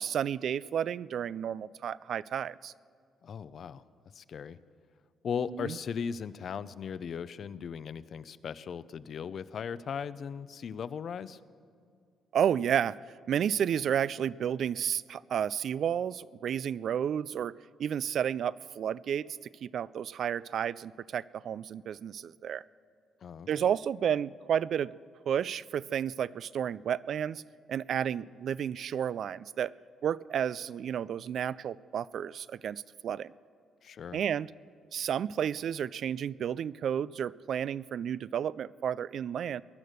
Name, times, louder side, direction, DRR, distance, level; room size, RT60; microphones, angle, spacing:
voice 1, 0.0-2.7 5.5-5.8 12.3-13.0 13.3-17.5 17.8-19.3 19.6-22.6 23.5-24.9 25.3-27.4 27.7-29.7 30.0-33.3 34.1-34.5 34.9-39.6, right 9 dB, 65° right, 20 dB, 0.3 m, -31 dB
voice 2, 3.2-3.8 4.1-4.6 5.2-11.4 23.2-23.6 33.8-34.2, left 7 dB, 55° left, 16 dB, 0.5 m, -38 dB
20.0 x 10.5 x 6.6 m, 2.3 s
cardioid pair, 90°, 0 cm